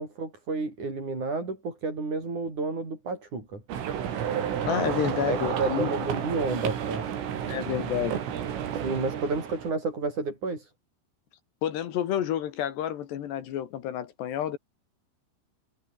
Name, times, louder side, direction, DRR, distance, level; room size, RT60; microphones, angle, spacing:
voice 1, 0.0-3.6 5.3-7.1 8.7-10.7, right 3 dB, 35° right, 9.0 m, -31 dB
sound 1, 3.7-9.7, right 9 dB, 75° right, 6.0 m, -31 dB
voice 2, 4.7-6.1 7.5-8.2 11.6-14.6, left 10 dB, 65° left, 3.6 m, -30 dB
omnidirectional pair, 5.9 m